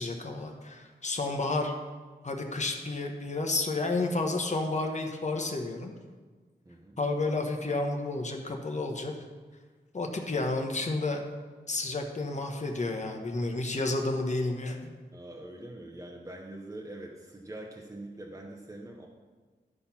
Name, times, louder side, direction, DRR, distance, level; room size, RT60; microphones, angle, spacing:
voice 1, 0.0-1.7 2.2-5.9 7.0-9.1 9.9-11.2 11.7-14.9, left 2 dB, 40° left, 2 dB, 1.1 m, -31 dB
voice 2, 6.6-7.0 15.1-19.1, right 1 dB, 15° right, -1 dB, 1.0 m, -44 dB
12.0 x 4.3 x 5.6 m, 1.4 s
wide cardioid pair, 80°, 18 cm